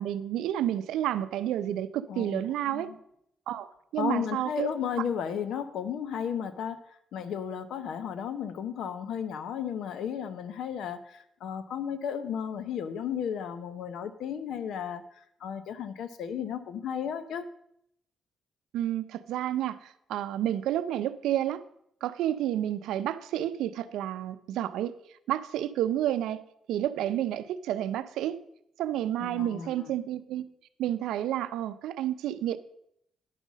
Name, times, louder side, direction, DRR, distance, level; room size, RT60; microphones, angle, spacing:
voice 1, 0.0-2.9 3.5-4.7 5.0-5.1 18.7-21.6 22.0-26.4 26.7-28.4 28.8-30.5 30.8-32.6, right 12 dB, 85° right, 13 dB, 0.5 m, -30 dB
voice 2, 2.1-2.4 2.7-3.0 4.0-6.8 7.1-15.0 15.4-17.5 29.2-29.7, left 8 dB, 75° left, 13 dB, 0.7 m, -34 dB
9.9 x 5.5 x 6.1 m, 0.75 s
cardioid pair, 90°, 0 cm